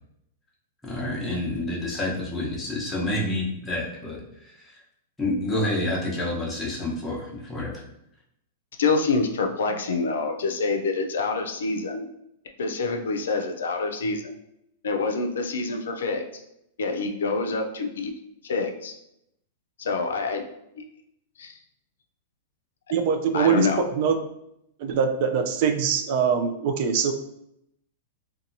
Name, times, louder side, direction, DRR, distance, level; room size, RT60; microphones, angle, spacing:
voice 1, 0.8-4.2 5.2-7.8, left 1 dB, 10° left, -5 dB, 0.8 m, -28 dB
voice 2, 8.8-12.1 12.6-14.3 14.8-16.4 16.8-18.1 18.4-18.9 19.8-20.5 20.8-20.9 21.4-21.6 22.9-23.0 23.3-23.8, left 4 dB, 90° left, 4 dB, 0.4 m, -26 dB
voice 3, 22.9-23.7 24.0-24.2 24.8-27.1, right 7 dB, 50° right, 6 dB, 0.3 m, -23 dB
2.7 x 2.2 x 2.6 m, 0.78 s
hypercardioid pair, 140°, 0 cm